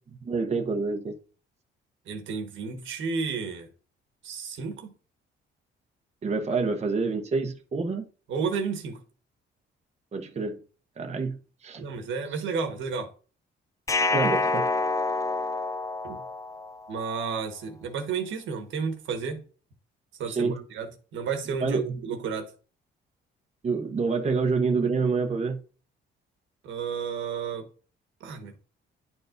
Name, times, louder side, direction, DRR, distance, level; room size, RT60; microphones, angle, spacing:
voice 1, 0.1-1.2 6.2-8.0 10.1-10.6 11.0-11.8 14.1-14.7 20.3-20.6 21.6-22.0 23.6-25.6, right 4 dB, 35° right, 0.9 m, -27 dB
voice 2, 2.1-3.7 4.2-4.9 8.3-9.0 11.8-13.1 16.0-16.2 16.9-19.4 20.2-22.5 26.6-27.7 28.2-28.5, right 5 dB, 75° right, 1.3 m, -32 dB
sound 1, 13.9-17.0, left 3 dB, 15° left, 0.4 m, -27 dB
10.5 x 4.6 x 2.6 m
cardioid pair, 90°, 20 cm